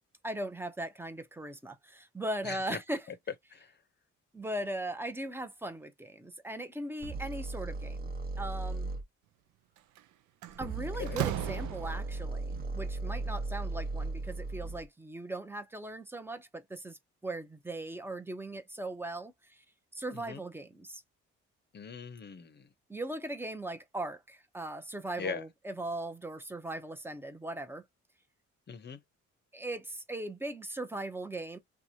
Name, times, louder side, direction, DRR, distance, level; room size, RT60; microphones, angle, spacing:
voice 1, 0.2-3.1 4.3-8.9 10.6-19.6 19.9-21.0 22.9-27.8 29.5-31.6, right 1 dB, 5° right, 0.7 m, -39 dB
voice 2, 2.4-2.8 3.5-3.8 10.8-11.2 20.1-20.4 21.7-22.7 25.2-25.4 28.7-29.0, left 5 dB, 35° left, 0.8 m, -41 dB
sound 1, 7.0-9.0 10.5-14.9, right 3 dB, 30° right, 1.0 m, -37 dB
Slam, 9.8-10.0 10.4-12.3, right 14 dB, 75° right, 0.5 m, -36 dB
2.9 x 2.3 x 2.7 m
cardioid pair, 90°, 30 cm